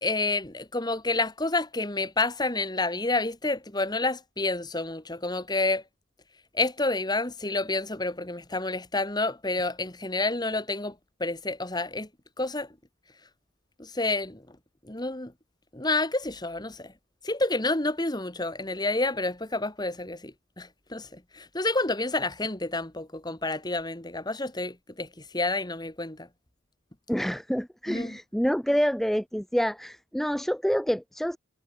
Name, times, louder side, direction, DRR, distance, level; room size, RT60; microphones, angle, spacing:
voice 1, 0.0-5.8 6.5-10.9 11.2-12.1 12.4-12.7 13.8-14.4 14.8-15.3 15.7-16.9 17.2-25.1 25.3-26.3 27.9-28.2, left 2 dB, 20° left, 2.0 m, -29 dB
voice 2, 27.1-31.4, equal, ahead, 0.5 m, -27 dB
head